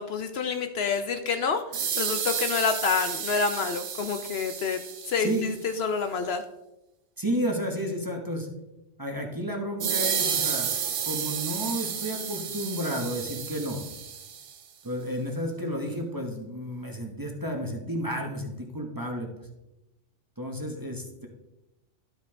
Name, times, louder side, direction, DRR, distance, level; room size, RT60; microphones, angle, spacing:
voice 1, 0.0-4.8 5.0-6.4, left 5 dB, 65° left, 8 dB, 0.8 m, -28 dB
sound 1, 1.7-5.5 9.8-14.5, right 7 dB, 55° right, 0.9 m, -31 dB
voice 2, 7.2-8.5 9.0-10.8 11.0-13.9 14.8-19.5 20.4-21.3, equal, 20° right, 1 dB, 1.0 m, -32 dB
12.0 x 5.2 x 3.5 m, 0.93 s
omnidirectional pair, 1.2 m